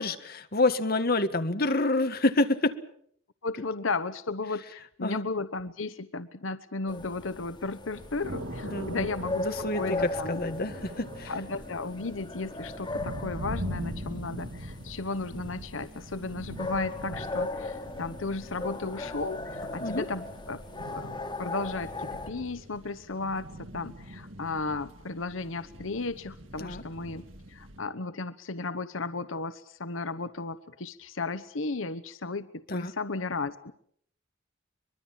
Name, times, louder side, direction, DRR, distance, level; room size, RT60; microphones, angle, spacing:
voice 1, 0.0-2.8 5.0-5.2 8.7-9.1 9.4-11.3 19.8-20.1 26.6-26.8 32.7-32.9, left 2 dB, 50° left, 9 dB, 1.7 m, -28 dB
voice 2, 3.4-9.4 9.8-10.4 11.3-20.6 20.9-33.7, left 3 dB, 90° left, 12 dB, 1.0 m, -34 dB
sound 1, 6.9-22.3, left 2 dB, 25° left, 2.6 m, -38 dB
sound 2, 7.9-27.8, right 1 dB, 90° right, 4.2 m, -42 dB
24.0 x 22.5 x 7.4 m, 0.66 s
head